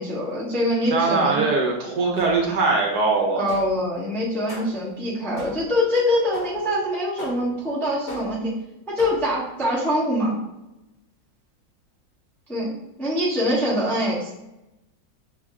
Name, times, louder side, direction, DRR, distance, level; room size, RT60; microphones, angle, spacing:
voice 1, 0.0-1.4 3.4-8.5 8.9-10.4 12.5-14.3, left 1 dB, ahead, -7 dB, 0.8 m, -24 dB
voice 2, 0.9-3.5, right 3 dB, 65° right, 0 dB, 1.2 m, -21 dB
sound 1, 2.2-2.7 3.5-3.9 4.5-4.9 5.4-5.8 6.3-6.7 7.2-7.7 8.1-8.5 9.0-9.4, left 1 dB, 50° left, 1.6 m, -38 dB
6.1 x 2.1 x 3.5 m, 0.92 s
omnidirectional pair, 2.0 m